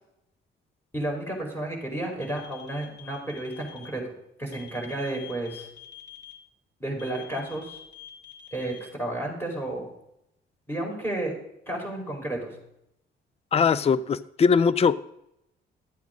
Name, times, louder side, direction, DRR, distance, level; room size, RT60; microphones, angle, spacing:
voice 1, 0.9-4.1 4.4-5.7 6.8-7.8 8.5-9.9 10.7-11.3 11.7-12.5, right 1 dB, 10° left, -1 dB, 4.9 m, -32 dB
sound 1, 2.2-3.8 4.5-6.3 7.0-8.8, left 10 dB, 55° left, 2.8 m, -46 dB
voice 2, 13.5-15.0, left 6 dB, 30° left, 17 dB, 0.5 m, -21 dB
13.0 x 8.4 x 3.9 m, 0.79 s
cardioid pair, 90°, 20 cm